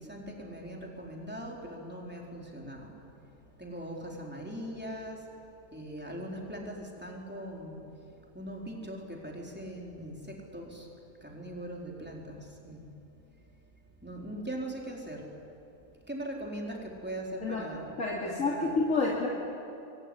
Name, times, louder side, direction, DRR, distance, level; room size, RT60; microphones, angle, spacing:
voice 1, 0.0-10.9 11.2-12.9 14.0-15.4 15.8-17.9 18.2-18.8, right 1 dB, 10° right, -1 dB, 4.1 m, -41 dB
voice 2, 18.0-19.3, left 3 dB, 80° left, -3 dB, 3.0 m, -29 dB
25.0 x 23.0 x 10.0 m, 2.8 s
omnidirectional pair, 1.3 m